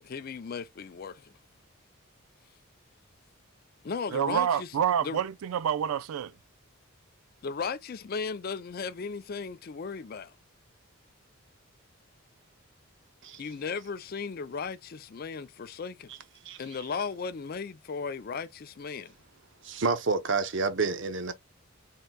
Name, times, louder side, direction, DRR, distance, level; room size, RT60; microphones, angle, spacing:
voice 1, 0.0-1.3 3.8-4.7 5.0-5.2 7.4-10.3 13.4-16.1 16.6-19.1, left 5 dB, 45° left, 0.4 m, -36 dB
voice 2, 4.1-6.3, right 8 dB, 80° right, 0.3 m, -28 dB
voice 3, 19.6-21.3, right 4 dB, 55° right, 0.7 m, -29 dB
4.5 x 3.7 x 2.2 m
head